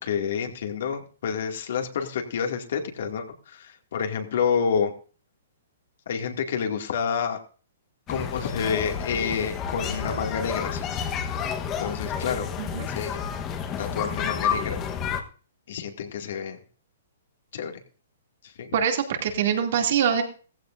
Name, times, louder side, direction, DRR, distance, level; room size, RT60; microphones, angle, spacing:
voice 1, 0.0-4.9 6.1-7.4 8.1-10.9 11.8-12.5 12.9-13.2 13.8-14.8 15.7-16.6 17.5-17.8 18.4-18.7, left 6 dB, 65° left, 4 dB, 2.3 m, -29 dB
sound 1, 8.1-15.2, left 7 dB, 20° left, 1.2 m, -30 dB
voice 2, 18.7-20.2, right 8 dB, 55° right, 4 dB, 2.6 m, -24 dB
16.0 x 15.0 x 2.6 m, 0.38 s
hypercardioid pair, 160°, 0 cm